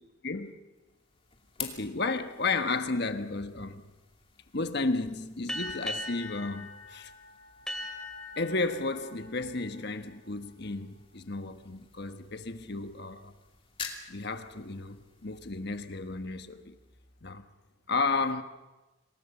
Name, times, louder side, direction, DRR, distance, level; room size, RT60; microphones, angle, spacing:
sound 1, 0.7-17.7, left 6 dB, 25° left, 2.6 m, -50 dB
voice 1, 1.6-3.8 4.5-7.1 8.4-13.3 14.1-16.7 17.2-17.4 17.9-18.4, left 3 dB, 50° left, 1.3 m, -33 dB
sound 2, 5.5-10.6, left 1 dB, 5° left, 2.4 m, -41 dB
27.5 x 19.5 x 7.1 m
head